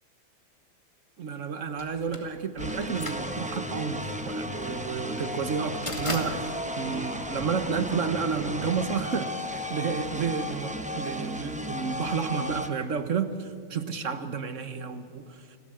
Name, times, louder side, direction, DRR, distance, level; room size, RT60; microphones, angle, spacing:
voice 1, 1.2-15.5, right 6 dB, 45° right, 10 dB, 1.2 m, -31 dB
sound 1, 1.8-7.9, left 1 dB, 15° left, 2.1 m, -39 dB
sound 2, 2.6-12.7, equal, 10° right, 0.5 m, -34 dB
29.0 x 13.0 x 7.7 m, 2.6 s
omnidirectional pair, 2.2 m